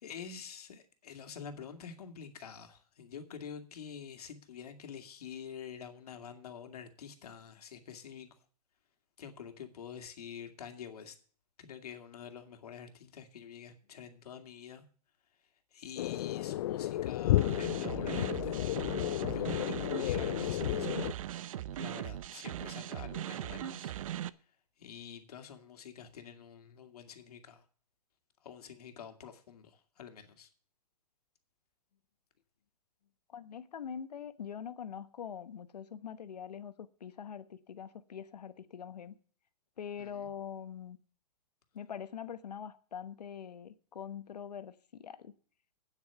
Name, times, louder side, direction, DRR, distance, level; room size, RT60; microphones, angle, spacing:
voice 1, 0.0-8.3 9.2-11.2 11.6-14.8 15.7-18.6 19.3-20.9 21.8-23.9 24.8-27.6 28.4-30.5 40.0-40.1, left 7 dB, 70° left, 2.1 m, -47 dB
sound 1, 16.0-21.1, left 14 dB, 45° left, 0.4 m, -32 dB
sound 2, 17.4-24.3, right 12 dB, 55° right, 0.6 m, -40 dB
voice 2, 33.3-39.2 39.8-41.0 41.7-45.3, left 8 dB, 85° left, 1.1 m, -44 dB
8.8 x 8.4 x 6.9 m
hypercardioid pair, 150°, 20 cm